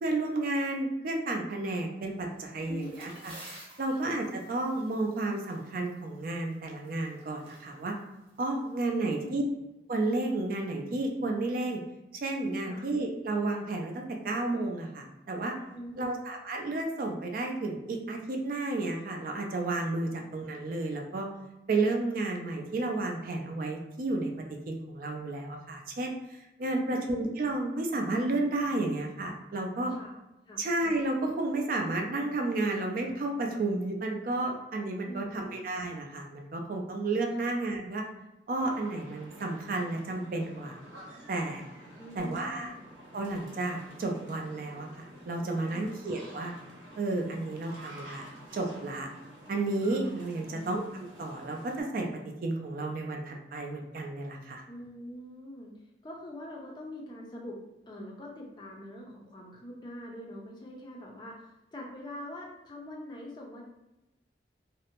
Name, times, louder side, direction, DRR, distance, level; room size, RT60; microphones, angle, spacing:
voice 1, 0.0-3.3 3.8-7.9 8.4-9.4 9.9-11.8 12.1-15.5 16.0-21.3 21.7-24.3 24.7-29.9 30.6-38.0 38.5-40.8 41.3-41.6 42.2-42.7 43.1-46.5 47.0-48.2 48.5-49.1 49.5-52.1 52.4-54.6, right 2 dB, 50° right, 2 dB, 0.4 m, -32 dB
sound 1, 2.2-9.3, right 1 dB, 30° right, 0.8 m, -53 dB
voice 2, 2.7-3.1 3.9-4.2 8.6-9.4 12.6-12.8 15.7-16.2 20.1-20.2 26.8-27.1 29.9-30.1 30.5-30.6 35.0-35.5 37.4-37.5 42.0-42.7 45.7-45.9 50.4-50.7 54.7-55.7 56.0-57.6 57.9-61.4 61.7-63.6, left 1 dB, 25° left, -1 dB, 0.4 m, -44 dB
sound 2, 38.5-51.8, equal, 80° right, 1.0 m, -50 dB
2.5 x 2.0 x 2.9 m, 0.95 s
head